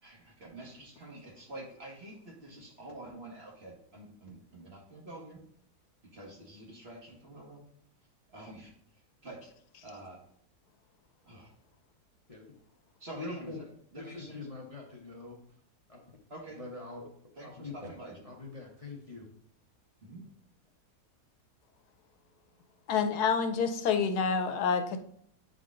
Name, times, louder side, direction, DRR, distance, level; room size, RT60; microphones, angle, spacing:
voice 1, 0.0-5.4 6.1-7.7 8.3-8.7 9.2-9.5 9.8-10.2 11.2-11.5 13.0-13.6 13.9-14.4 16.3-16.6 17.4-18.3 20.0-20.2, right 2 dB, 40° right, -2 dB, 1.8 m, -47 dB
voice 2, 13.1-13.6 13.9-15.4 15.9-16.2 16.5-17.1 17.4-17.9 18.2-19.3, left 3 dB, 30° left, -2 dB, 0.8 m, -43 dB
voice 3, 22.9-25.0, left 6 dB, 85° left, 8 dB, 1.2 m, -28 dB
8.3 x 3.8 x 3.7 m, 0.66 s
omnidirectional pair, 1.7 m